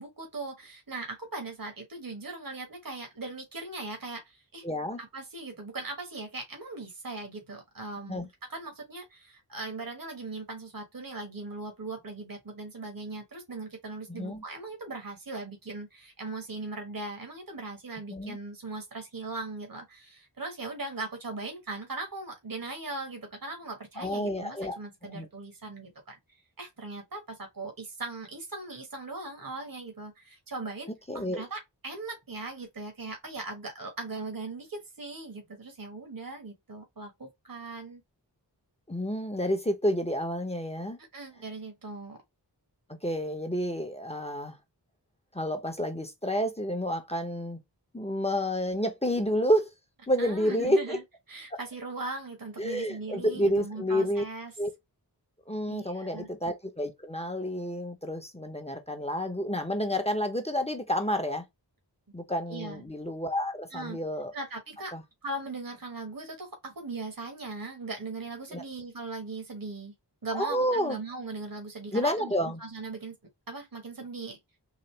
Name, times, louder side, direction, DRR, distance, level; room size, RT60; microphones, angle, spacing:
voice 1, 0.0-4.6 5.0-38.0 41.1-42.2 50.2-51.0 51.3-54.5 55.7-56.3 62.5-62.8 63.7-64.0 64.3-64.9 65.2-69.9 70.2-72.3 72.6-73.1 73.5-74.4, right 3 dB, 55° right, 1.5 m, -39 dB
voice 2, 4.6-5.0 8.1-8.3 14.1-14.4 18.1-18.4 24.0-24.8 25.1-25.3 31.1-31.4 38.9-41.0 43.0-44.6 45.3-47.6 47.9-49.7 50.1-51.0 51.5-51.6 52.6-54.2 54.6-54.7 55.5-61.4 62.1-64.3 64.9-65.0 68.5-68.6 70.3-71.0 71.9-72.6, equal, 15° left, 0.9 m, -29 dB
4.0 x 2.6 x 3.2 m
wide cardioid pair, 55°, 41 cm